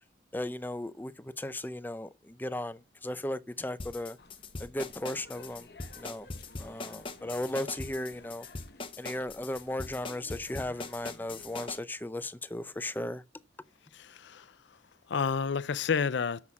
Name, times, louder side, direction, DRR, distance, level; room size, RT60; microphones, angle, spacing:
voice 1, 0.3-4.2 4.6-5.7 6.0-6.3 6.6-8.5 9.0-13.2, left 1 dB, 10° left, 0.5 m, -36 dB
sound 1, 3.8-11.8, left 3 dB, 30° left, 0.8 m, -41 dB
sound 2, 4.2-11.7, left 3 dB, 55° left, 0.9 m, -54 dB
voice 2, 13.9-14.8 15.1-16.4, left 6 dB, 75° left, 0.5 m, -30 dB
7.1 x 6.3 x 6.0 m
head